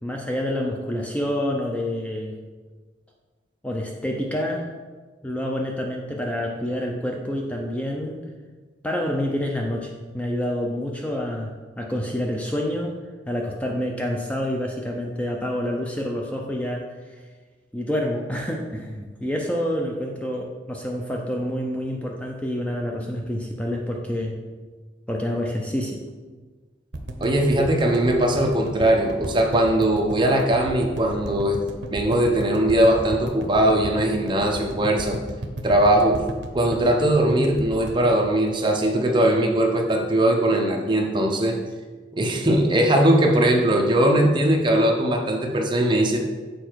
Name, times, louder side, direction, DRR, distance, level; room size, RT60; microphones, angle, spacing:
voice 1, 0.0-2.3 3.6-4.7 5.2-8.2 8.8-12.9 13.3-17.1 17.7-24.4 25.1-26.0, left 1 dB, 5° left, 0 dB, 0.5 m, -28 dB
sound 1, 26.9-39.1 39.4-39.5 39.7-39.8, right 1 dB, 75° right, 0.7 m, -34 dB
voice 2, 27.2-31.6 31.9-35.2 35.6-36.2 36.5-41.6 42.1-46.2, right 1 dB, 25° right, 1 dB, 0.8 m, -20 dB
6.8 x 4.4 x 4.6 m, 1.4 s
head